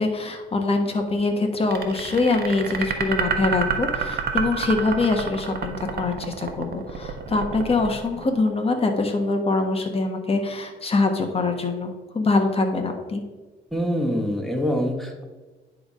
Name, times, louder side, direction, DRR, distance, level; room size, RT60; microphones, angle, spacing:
voice 1, 0.0-13.2, left 3 dB, 30° left, 4 dB, 1.4 m, -24 dB
sound 1, 1.7-8.8, right 6 dB, 55° right, 1.1 m, -28 dB
voice 2, 13.7-15.2, equal, ahead, 1 dB, 1.5 m, -25 dB
9.9 x 3.5 x 5.4 m, 1.3 s
cardioid pair, 90°, 20 cm